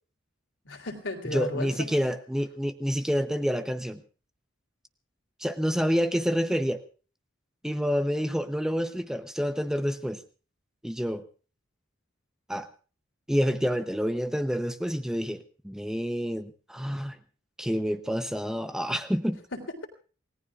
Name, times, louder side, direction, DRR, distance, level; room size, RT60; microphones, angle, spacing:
voice 1, 0.7-1.9 19.5-19.9, left 2 dB, 70° left, 3 dB, 3.5 m, -34 dB
voice 2, 1.3-4.0 5.4-6.8 7.6-10.2 10.8-11.2 12.5-12.7 13.3-17.2 17.6-19.4, equal, 5° right, 8 dB, 0.7 m, -28 dB
28.0 x 18.0 x 2.4 m, 0.38 s
head